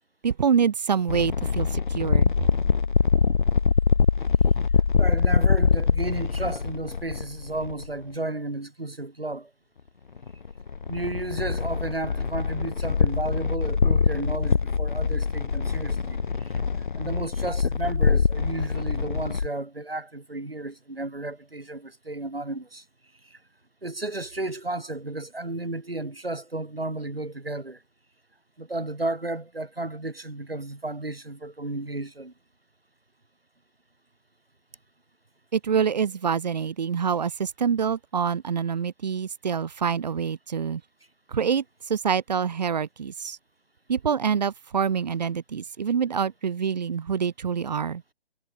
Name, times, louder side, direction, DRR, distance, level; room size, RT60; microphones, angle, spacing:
voice 1, 0.2-2.3 35.5-40.8 41.3-41.6 41.9-43.4 43.9-48.0, right 7 dB, 45° right, 2.5 m, -26 dB
sound 1, 1.1-7.9 10.2-19.5, left 5 dB, 55° left, 3.3 m, -24 dB
voice 2, 5.0-9.5 10.9-16.2 17.0-22.8 23.2-23.4 23.8-27.8 28.6-32.3, right 2 dB, 80° right, 4.5 m, -33 dB
figure-of-eight pair, 140°, 29 cm